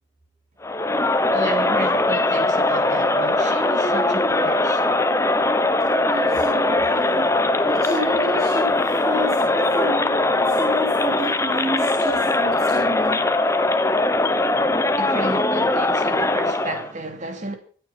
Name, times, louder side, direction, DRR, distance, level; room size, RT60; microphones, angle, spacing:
Crowd, 0.6-16.9, left 2 dB, 15° left, 0.9 m, -20 dB
voice 1, 1.3-5.0 14.9-17.6, right 2 dB, 40° right, 2.8 m, -32 dB
voice 2, 6.0-13.2, equal, 15° right, 5.3 m, -30 dB
24.0 x 9.4 x 6.1 m
head